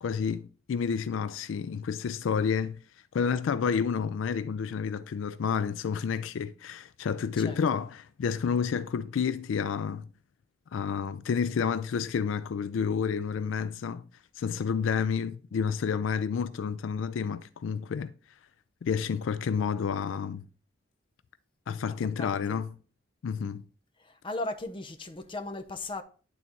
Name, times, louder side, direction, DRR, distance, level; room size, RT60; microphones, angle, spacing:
voice 1, 0.0-2.8 3.1-10.1 10.7-14.1 14.4-18.1 18.8-20.4 21.7-22.7 23.2-23.7, left 6 dB, 80° left, 0.4 m, -30 dB
voice 2, 22.2-22.6 24.0-26.0, left 2 dB, 25° left, 0.6 m, -37 dB
11.0 x 4.0 x 2.9 m
head